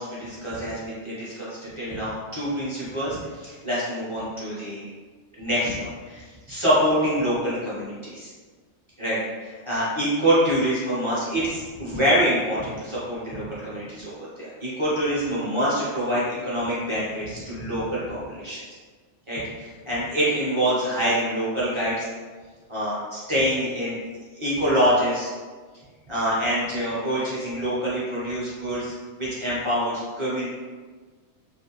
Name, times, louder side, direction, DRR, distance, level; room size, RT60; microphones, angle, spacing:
voice 1, 0.0-4.9 5.4-8.3 9.0-18.6 19.3-22.1 22.7-23.9 24.3-25.3 26.1-30.5, equal, 30° right, -9 dB, 0.6 m, -26 dB
2.4 x 2.1 x 2.9 m, 1.4 s
omnidirectional pair, 1.3 m